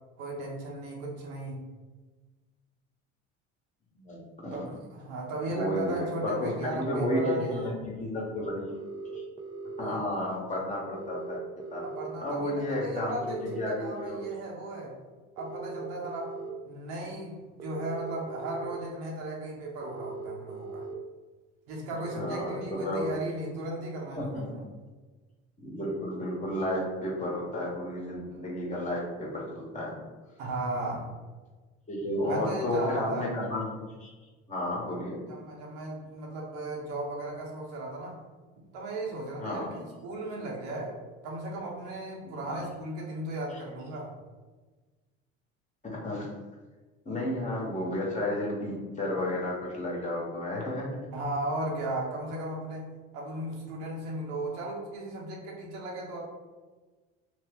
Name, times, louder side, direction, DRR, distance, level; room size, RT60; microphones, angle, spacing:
voice 1, 0.2-1.6 4.5-7.7 9.8-10.0 11.8-14.9 15.4-16.3 16.7-20.9 21.7-24.6 30.4-31.1 32.2-33.3 34.9-35.0 35.3-38.2 38.6-44.1 51.1-56.2, right 2 dB, 85° right, -2 dB, 1.0 m, -36 dB
voice 2, 5.5-8.7 9.1-9.2 9.8-11.4 11.7-11.8 12.2-14.2 22.1-23.1 24.2-24.4 25.6-29.9 31.9-33.6 34.0-34.1 34.5-35.2 39.4-39.7 42.4-42.6 46.0-46.3 47.0-50.9, left 1 dB, 25° left, -4 dB, 1.1 m, -32 dB
sound 1, 6.6-7.6 8.7-9.8 10.9-12.1 13.1-14.3 15.4-16.5 17.6-18.7 19.8-20.9 22.0-23.2, right 3 dB, 15° right, 0.4 m, -40 dB
3.0 x 2.1 x 3.5 m, 1.3 s
supercardioid pair, 85°, 31 cm